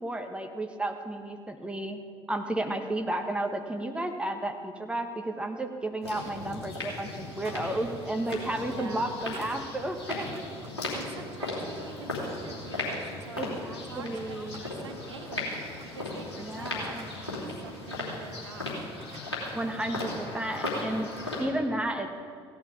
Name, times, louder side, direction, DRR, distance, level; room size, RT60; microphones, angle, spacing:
voice 1, 0.0-2.0 2.3-10.3 13.4-14.6 16.4-17.1 19.5-21.1 21.4-22.2, right 1 dB, 5° right, 4 dB, 1.4 m, -32 dB
sound 1, 6.0-21.4, left 2 dB, 80° left, 2.9 m, -36 dB
sound 2, 6.0-6.6 6.8-8.8 9.1-10.9 11.3-12.1 12.3-13.2 13.8-19.3, right 4 dB, 40° right, 2.2 m, -53 dB
voice 2, 8.7-9.2 10.9-18.9, right 4 dB, 80° right, 6 dB, 0.9 m, -46 dB
16.0 x 11.0 x 5.1 m, 2.1 s
figure-of-eight pair, 55°, 14 cm